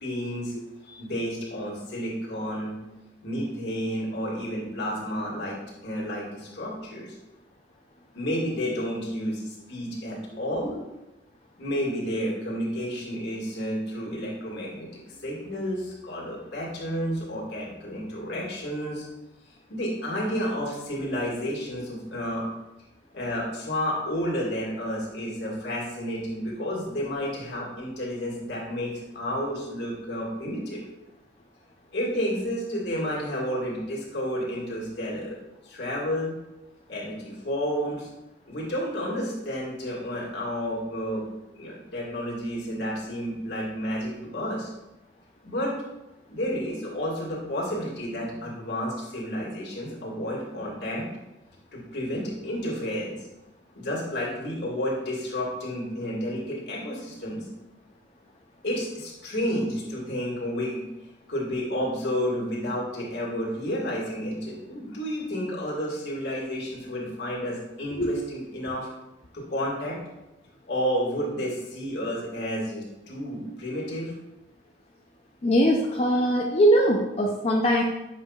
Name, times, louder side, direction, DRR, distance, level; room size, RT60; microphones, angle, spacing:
voice 1, 0.0-0.5 0.8-2.7 3.2-5.6 5.8-7.2 8.1-10.8 11.6-19.1 19.7-22.5 23.1-30.8 31.9-35.4 35.6-36.3 36.9-38.1 38.5-41.2 41.6-44.7 45.4-45.8 46.3-51.1 51.7-53.3 53.7-57.5 58.6-60.8 61.3-68.9 69.3-70.0 70.7-74.1, equal, 70° left, -4 dB, 1.9 m, -31 dB
voice 2, 75.4-77.8, equal, 35° left, -1 dB, 0.5 m, -21 dB
7.4 x 5.6 x 2.3 m, 0.99 s
head